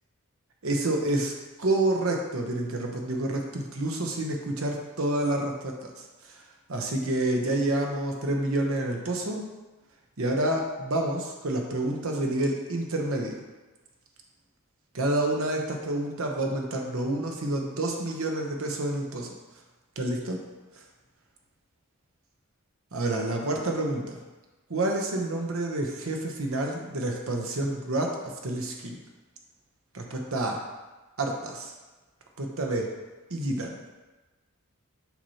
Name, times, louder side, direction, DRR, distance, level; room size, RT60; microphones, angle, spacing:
voice 1, 0.6-1.3 1.6-6.4 6.7-9.5 10.2-13.4 14.9-19.3 20.0-20.4 22.9-24.2 24.7-29.0 29.9-30.6 31.2-31.7 32.4-32.9 33.3-33.8, right 1 dB, 70° right, 1 dB, 0.9 m, -28 dB
5.9 x 2.9 x 5.6 m, 1.2 s
head